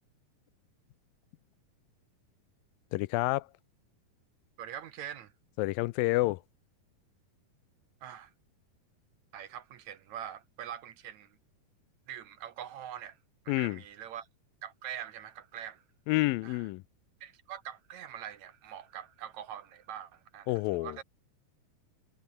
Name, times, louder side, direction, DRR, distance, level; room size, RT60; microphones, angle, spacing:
voice 1, 2.9-3.5 5.6-6.4 13.5-13.8 16.1-16.8 20.5-21.0, left 20 dB, 90° left, 2.4 m, -29 dB
voice 2, 4.6-5.3 8.0-8.3 9.3-11.4 12.1-13.2 13.4-14.3 14.6-15.8 16.4-16.6 17.2-21.0, right 10 dB, 65° right, 2.3 m, -43 dB
omnidirectional pair, 4.0 m